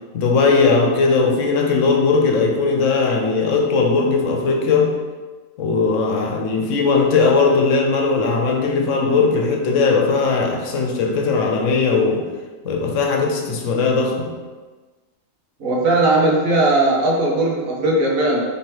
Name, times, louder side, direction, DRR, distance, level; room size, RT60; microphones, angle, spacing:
voice 1, 0.1-5.0 5.6-12.3 12.6-14.3, left 4 dB, 75° left, 1 dB, 1.0 m, -18 dB
voice 2, 15.6-18.4, right 2 dB, 85° right, -2 dB, 1.2 m, -18 dB
3.2 x 3.1 x 4.5 m, 1.3 s
omnidirectional pair, 1.4 m